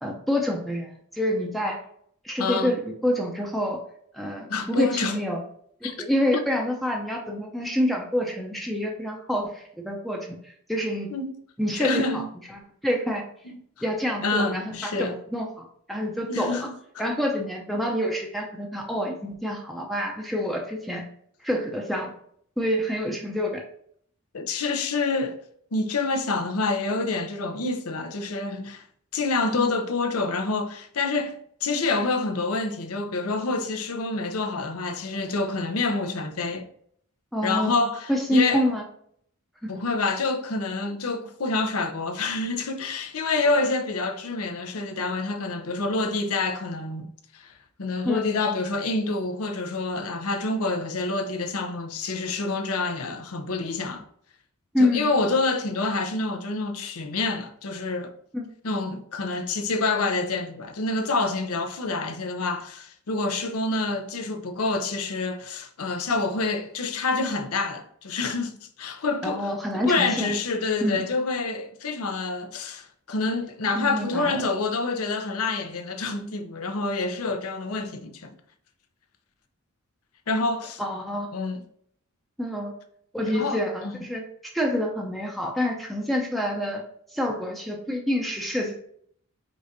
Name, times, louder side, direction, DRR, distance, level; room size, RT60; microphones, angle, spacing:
voice 1, 0.0-1.8 2.2-3.8 4.1-5.4 5.8-10.4 10.7-11.1 11.6-12.2 12.5-13.3 13.8-16.7 17.0-21.0 21.4-22.1 22.6-23.6 29.5-29.7 37.3-37.8 38.1-38.8 48.1-48.2 54.7-55.1 58.3-58.5 69.2-70.3 70.8-71.0 73.8-74.5 80.8-81.3 82.4-82.7 83.1-86.8 87.1-88.9, equal, ahead, 0.6 m, -27 dB
voice 2, 2.4-2.7 4.5-5.2 5.8-5.9 6.3-6.5 11.1-11.3 11.7-12.3 13.5-13.6 14.2-15.1 16.3-17.0 24.3-25.4 25.7-28.9 29.1-36.7 37.4-38.6 39.7-47.5 47.8-54.0 54.8-58.1 58.6-69.5 69.9-78.3 80.3-80.8 81.3-81.6 83.3-84.0, left 3 dB, 75° left, 0.7 m, -27 dB
5.0 x 3.6 x 2.7 m
head